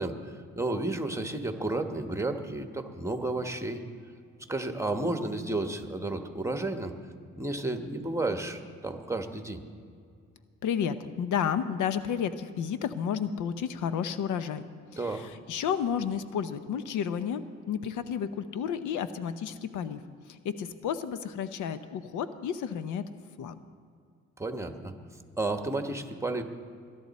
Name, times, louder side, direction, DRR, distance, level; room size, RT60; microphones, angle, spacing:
voice 1, 0.0-3.8 4.5-6.9 7.4-9.6 15.0-15.3 24.4-24.9 25.4-26.4, right 2 dB, 10° right, 6 dB, 1.2 m, -32 dB
voice 2, 10.6-14.6 14.9-20.0 20.3-23.1 23.4-23.6, left 8 dB, 80° left, 12 dB, 0.8 m, -32 dB
21.5 x 11.0 x 4.2 m, 2.3 s
cardioid pair, 90°, 30 cm